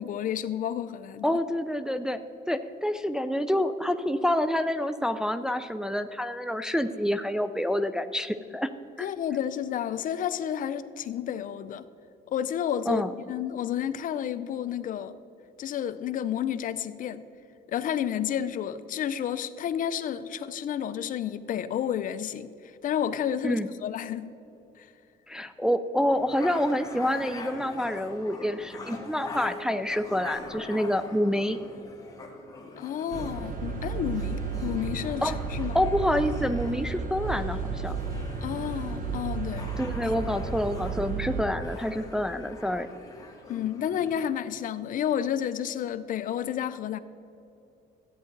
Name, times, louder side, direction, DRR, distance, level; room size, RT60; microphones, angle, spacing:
voice 1, 0.0-1.4 9.0-11.9 12.3-15.1 15.6-17.3 17.7-22.5 22.8-24.3 24.8-24.9 32.8-35.8 38.4-39.7 40.0-40.3 43.5-47.0, left 9 dB, 55° left, 13 dB, 0.5 m, -31 dB
voice 2, 1.2-2.2 2.5-8.7 9.0-9.1 12.9-13.1 23.4-23.7 25.3-31.6 35.2-35.3 35.7-38.0 39.8-42.9, left 1 dB, 5° right, 8 dB, 0.3 m, -27 dB
sound 1, 26.1-44.3, left 3 dB, 20° left, 1.6 m, -44 dB
sound 2, 33.1-41.4, right 4 dB, 55° right, 1.1 m, -33 dB
13.5 x 9.0 x 3.9 m, 2.8 s
cardioid pair, 110°, 17 cm